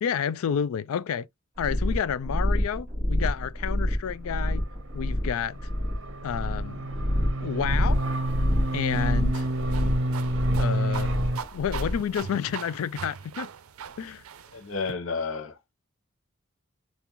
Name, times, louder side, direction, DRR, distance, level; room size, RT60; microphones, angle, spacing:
voice 1, 0.0-1.3 1.6-4.6 4.9-5.7 6.2-6.9 7.4-8.1 8.7-9.5 10.6-11.2 11.5-13.5 14.0-14.2, left 8 dB, 85° left, 0.3 m, -30 dB
sound 1, 1.6-12.1, equal, 30° right, 2.8 m, -28 dB
sound 2, 4.4-11.4, right 1 dB, 60° right, 0.8 m, -30 dB
sound 3, 7.7-14.9, right 6 dB, 90° right, 0.5 m, -41 dB
voice 2, 14.5-15.6, left 4 dB, 70° left, 0.7 m, -31 dB
5.3 x 2.4 x 2.9 m
head